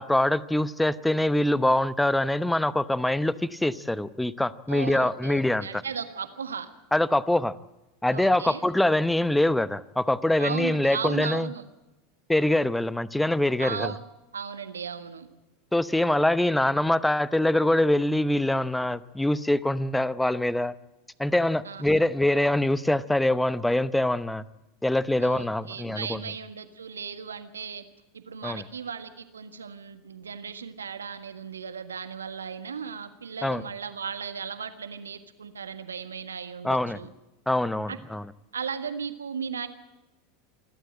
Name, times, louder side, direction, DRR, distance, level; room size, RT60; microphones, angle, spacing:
voice 1, 0.0-5.8 6.9-7.6 8.0-11.5 12.3-13.9 15.7-20.7 21.2-24.4 24.8-26.2 28.4-28.6 33.4-33.6 36.6-37.0 37.5-38.2, left 1 dB, 5° left, 18 dB, 0.8 m, -24 dB
voice 2, 4.7-6.7 8.1-8.6 10.4-11.6 13.6-14.0 14.3-15.3 21.6-22.1 25.2-27.8 28.1-37.1 37.9-38.0 38.5-39.7, right 6 dB, 80° right, 10 dB, 1.6 m, -36 dB
27.5 x 13.0 x 8.8 m, 1.0 s
figure-of-eight pair, 85°, 0 cm